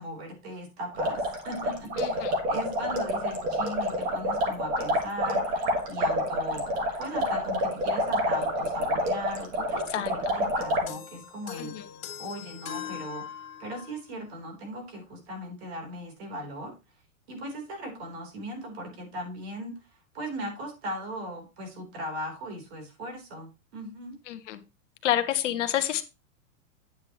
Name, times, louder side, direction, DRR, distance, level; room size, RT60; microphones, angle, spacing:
voice 1, 0.0-6.6 7.0-11.7 12.2-13.2 13.6-16.7 17.3-24.2, equal, 50° right, 3 dB, 3.6 m, -38 dB
sound 1, 0.9-10.9, equal, 20° right, 1.4 m, -28 dB
voice 2, 2.0-2.3 9.9-10.1 11.6-11.8 24.3-24.6 25.0-26.0, left 12 dB, 60° left, 8 dB, 1.1 m, -28 dB
sound 2, 10.9-14.1, left 9 dB, 80° left, 1.7 m, -41 dB
9.4 x 7.9 x 3.0 m, 0.27 s
supercardioid pair, 175°, 41 cm